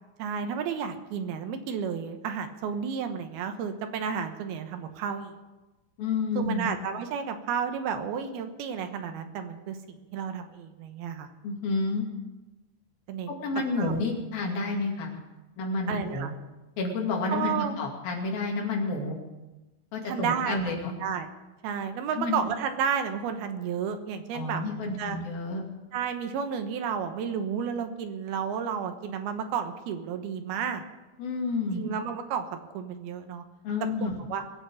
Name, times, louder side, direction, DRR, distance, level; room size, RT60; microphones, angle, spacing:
voice 1, 0.2-5.3 6.4-11.3 13.1-13.4 13.8-13.9 15.9-16.3 17.3-17.8 20.0-21.3 21.6-25.2 25.9-30.8 31.7-33.4 34.0-34.4, right 7 dB, 70° right, 7 dB, 2.9 m, -32 dB
voice 2, 6.0-6.7 11.4-12.1 13.4-15.2 15.6-16.3 16.8-19.2 19.9-20.9 22.1-22.4 24.3-25.6 31.2-31.8 33.6-34.1, left 3 dB, 60° left, 1 dB, 4.0 m, -30 dB
22.0 x 8.1 x 7.0 m, 1.1 s
omnidirectional pair, 5.0 m